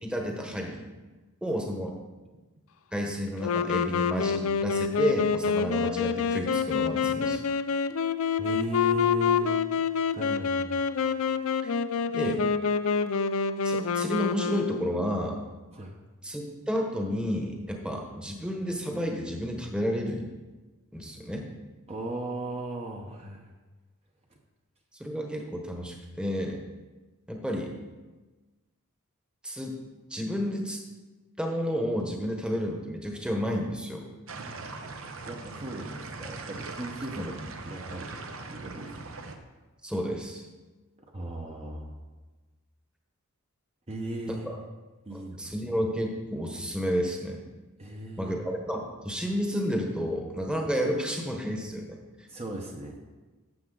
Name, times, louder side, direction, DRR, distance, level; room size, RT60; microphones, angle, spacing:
voice 1, 0.0-0.8 1.4-1.9 2.9-7.4 11.6-11.7 12.1-12.4 13.6-15.4 16.2-20.3 20.9-21.5 25.0-26.6 27.3-27.7 29.4-29.7 30.1-30.8 31.4-34.0 37.2-37.4 39.8-40.4 44.3-44.6 45.1-47.4 48.2-52.0, equal, 5° right, 1 dB, 1.1 m, -31 dB
Wind instrument woodwind instrument, 3.4-15.1, left 6 dB, 70° left, 0.4 m, -27 dB
voice 2, 8.4-9.5 10.1-10.9 15.7-16.0 21.9-23.5 35.2-37.3 37.7-39.1 41.1-42.0 43.9-44.5 45.1-45.5 47.8-48.4 52.3-53.2, right 1 dB, 30° right, 0 dB, 0.9 m, -37 dB
sound 1, 34.3-39.4, right 3 dB, 65° right, 0.9 m, -40 dB
12.0 x 7.5 x 3.9 m, 1.2 s
head